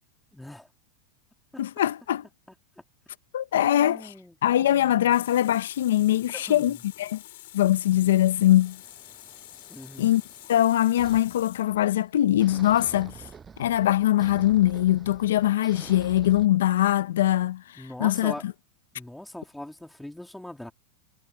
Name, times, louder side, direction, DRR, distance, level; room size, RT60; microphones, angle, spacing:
voice 1, 0.3-0.7 1.5-1.6 3.5-5.4 6.3-6.8 9.7-10.2 17.8-18.5 19.0-20.7, left 1 dB, ahead, 2.4 m, -41 dB
voice 2, 1.6-2.2 3.3-4.1 4.4-7.2 7.5-8.8 10.0-10.2 10.5-13.1 13.6-17.6 18.0-18.3, left 13 dB, 90° left, 0.6 m, -22 dB
Water tap faucet, 5.1-12.1, left 17 dB, 65° left, 4.2 m, -47 dB
sound 1, 8.4-12.1 12.4-16.5, right 6 dB, 15° right, 7.2 m, -48 dB
supercardioid pair, 160°, 0 cm